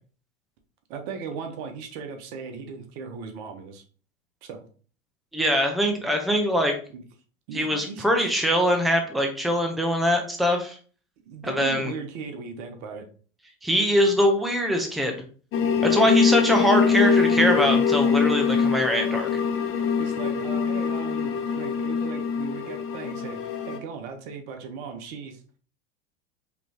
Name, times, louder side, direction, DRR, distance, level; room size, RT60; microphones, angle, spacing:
voice 1, 0.9-3.8 4.4-4.6 6.9-7.0 7.5-8.4 11.2-13.1 16.0-16.1 20.0-25.6, right 5 dB, 55° right, 5 dB, 1.2 m, -37 dB
voice 2, 5.3-6.7 7.5-10.8 11.4-11.9 13.6-15.1 15.8-19.3, equal, ahead, 4 dB, 0.9 m, -23 dB
sound 1, 15.5-23.8, left 6 dB, 35° left, 0.8 m, -23 dB
5.1 x 3.1 x 3.0 m, 0.40 s
hypercardioid pair, 95°, 39 cm